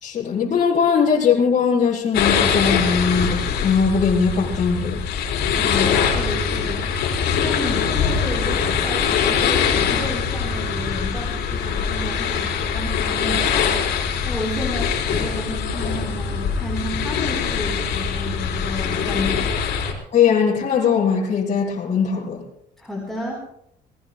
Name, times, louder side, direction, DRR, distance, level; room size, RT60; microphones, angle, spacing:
voice 1, 0.0-5.0 20.1-22.4, left 6 dB, 45° left, 4.5 m, -20 dB
sound 1, 2.1-19.9, left 7 dB, 75° left, 4.4 m, -23 dB
voice 2, 5.5-13.7 14.2-19.6 22.8-23.4, left 1 dB, ahead, 4.2 m, -31 dB
27.5 x 19.5 x 2.3 m
cardioid pair, 110°, 17 cm